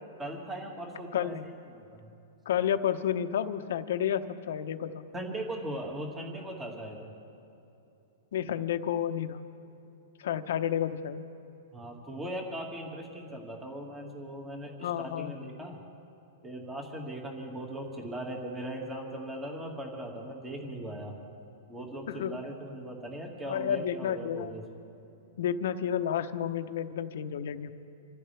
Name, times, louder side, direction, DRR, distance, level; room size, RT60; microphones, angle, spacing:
voice 1, 0.2-2.1 5.1-7.1 11.7-15.8 16.4-21.2 21.7-24.6, right 1 dB, 15° right, 1 dB, 2.0 m, -39 dB
voice 2, 1.1-1.5 2.4-5.0 8.3-9.4 10.2-11.3 14.8-15.3 22.1-22.4 23.5-24.6 25.4-27.7, left 9 dB, 70° left, 9 dB, 1.0 m, -31 dB
26.5 x 15.0 x 3.4 m, 2.9 s
hypercardioid pair, 150°, 0 cm